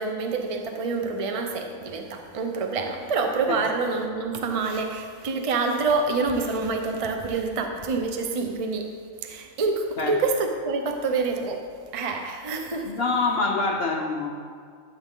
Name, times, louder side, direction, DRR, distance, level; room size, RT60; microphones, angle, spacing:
voice 1, 0.0-8.9 9.2-11.6 11.9-13.0, right 4 dB, 35° right, 4 dB, 0.6 m, -27 dB
voice 2, 12.8-14.3, left 3 dB, 55° left, 1 dB, 0.7 m, -25 dB
12.0 x 7.6 x 3.7 m, 2.1 s
omnidirectional pair, 1.7 m